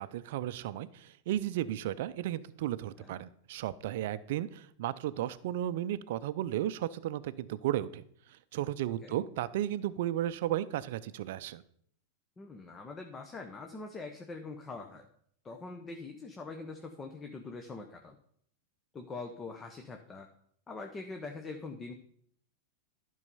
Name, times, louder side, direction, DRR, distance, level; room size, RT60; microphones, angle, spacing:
voice 1, 0.0-8.0 8.5-11.6, right 12 dB, 65° right, 14 dB, 0.5 m, -34 dB
voice 2, 12.4-15.1 15.4-18.2 18.9-20.3 20.7-21.9, left 3 dB, 20° left, 4 dB, 1.0 m, -43 dB
11.0 x 5.5 x 5.4 m, 0.65 s
hypercardioid pair, 105°, 0 cm